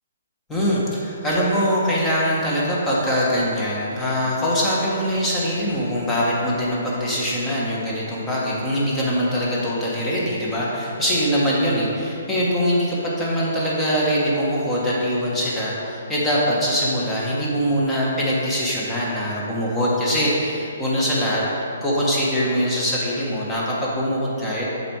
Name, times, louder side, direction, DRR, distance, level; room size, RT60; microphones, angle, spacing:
voice 1, 0.5-24.7, equal, 10° left, -6 dB, 1.5 m, -23 dB
7.2 x 4.3 x 4.8 m, 2.8 s
hypercardioid pair, 145°, 0 cm